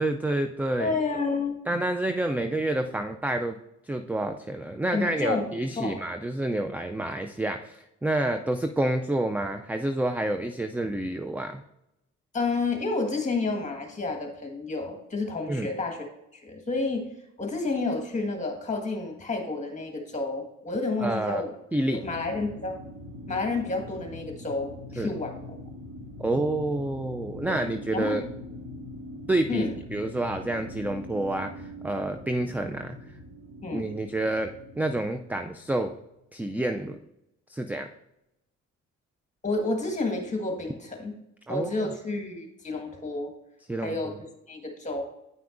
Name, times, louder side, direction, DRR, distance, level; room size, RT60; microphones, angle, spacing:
voice 1, 0.0-0.9 1.7-3.6 3.8-11.6 15.5-15.7 21.0-21.4 21.7-22.0 25.0-25.1 26.2-28.2 29.3-33.0 33.7-36.0 36.3-37.0 37.5-37.9 41.5-41.9 43.7-44.0, right 1 dB, 5° right, 6 dB, 0.4 m, -28 dB
voice 2, 0.8-1.6 4.9-5.5 5.8-6.0 12.3-16.1 16.3-17.1 17.4-21.5 21.9-22.8 23.3-25.4 27.5-27.6 27.9-28.3 29.5-29.7 33.6-33.9 39.4-41.1 41.5-43.3 43.8-44.1 44.5-45.0, left 3 dB, 25° left, 3 dB, 1.6 m, -30 dB
sound 1, 21.9-36.1, left 1 dB, 85° right, 1.7 m, -43 dB
9.3 x 5.7 x 2.6 m, 0.85 s
cardioid pair, 90°, 30 cm